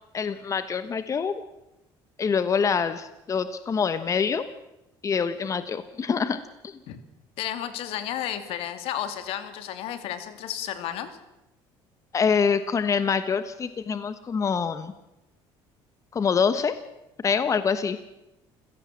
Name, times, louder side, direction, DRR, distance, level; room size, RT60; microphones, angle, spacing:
voice 1, 0.1-1.4 2.2-4.5 5.0-6.8 12.1-14.9 16.1-16.7 17.2-18.0, left 6 dB, 30° left, 12 dB, 1.3 m, -25 dB
voice 2, 7.4-11.1, left 11 dB, 75° left, 10 dB, 2.5 m, -32 dB
28.5 x 16.5 x 7.5 m, 0.95 s
cardioid pair, 110°, 10 cm